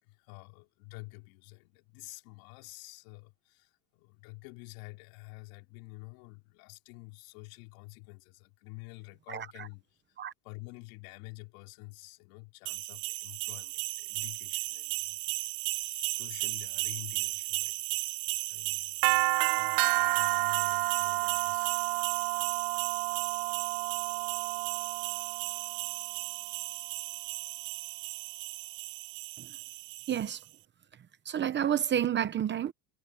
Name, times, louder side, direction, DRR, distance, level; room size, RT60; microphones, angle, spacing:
voice 1, 0.0-10.2 10.4-15.2 15.8-17.8 18.5-19.2 19.5-21.7, left 26 dB, 70° left, 4.5 m, -49 dB
voice 2, 9.3-9.7 10.2-10.3 29.4-29.6 30.1-30.4 31.2-32.7, right 10 dB, 25° right, 0.8 m, -30 dB
sound 1, 12.7-30.4, right 25 dB, 60° right, 0.6 m, -32 dB
cardioid pair, 150°, 45 cm